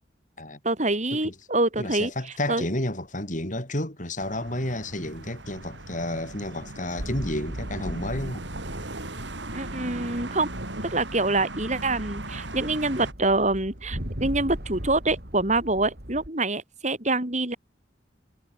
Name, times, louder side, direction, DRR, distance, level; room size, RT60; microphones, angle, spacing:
voice 1, 0.6-2.1 2.5-2.6 9.5-10.5 10.8-17.6, right 2 dB, 40° right, 4.1 m, -25 dB
voice 2, 1.8-8.5, left 1 dB, 45° left, 7.4 m, -31 dB
sound 1, 4.2-13.1, right 2 dB, 80° right, 5.7 m, -38 dB
sound 2, 7.0-16.3, equal, 60° right, 6.2 m, -39 dB
head